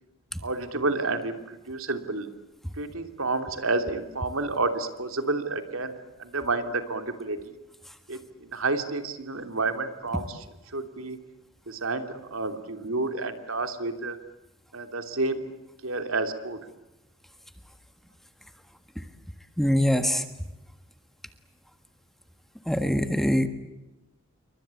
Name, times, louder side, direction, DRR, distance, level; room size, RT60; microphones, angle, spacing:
voice 1, 0.4-2.3 2.8-5.9 6.2-7.5 8.1-10.4 10.7-11.2 11.7-14.2 14.7-15.4 15.8-16.6, right 3 dB, 75° right, 7 dB, 2.9 m, -30 dB
voice 2, 19.6-20.2 22.7-23.5, equal, ahead, 8 dB, 1.5 m, -23 dB
29.0 x 24.0 x 8.4 m, 0.95 s
head